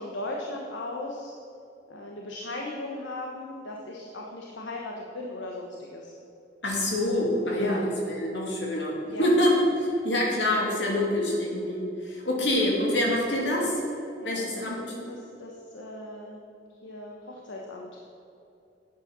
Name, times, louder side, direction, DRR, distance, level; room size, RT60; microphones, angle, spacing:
voice 1, 0.0-1.4 1.9-6.1 7.6-7.8 9.1-9.2 14.2-14.6 14.9-16.4 16.7-18.0, left 1 dB, 85° left, -1 dB, 1.3 m, -37 dB
voice 2, 6.6-13.8 14.2-15.1, left 1 dB, 70° left, -2 dB, 3.0 m, -26 dB
10.5 x 9.0 x 6.2 m, 2.7 s
head